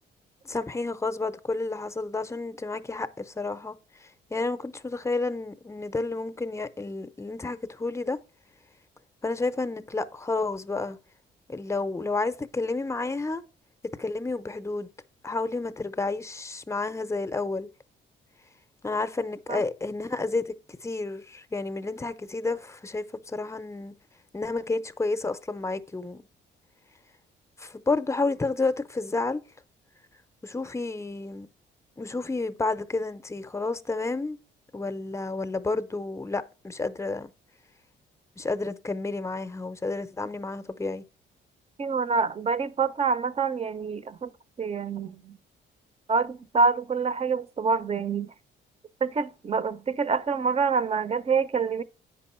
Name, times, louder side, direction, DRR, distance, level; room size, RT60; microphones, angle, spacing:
voice 1, 0.4-3.8 4.3-8.2 9.2-11.0 11.5-13.4 14.0-14.9 15.2-17.7 18.8-23.9 24.3-26.2 27.6-29.4 30.4-31.5 32.0-34.4 34.7-37.3 38.4-41.0, left 3 dB, 15° left, 0.6 m, -30 dB
voice 2, 41.8-44.3 44.6-45.3 46.1-48.3 49.0-51.8, right 5 dB, 30° right, 0.6 m, -26 dB
8.3 x 5.4 x 4.3 m
cardioid pair, 90°, 20 cm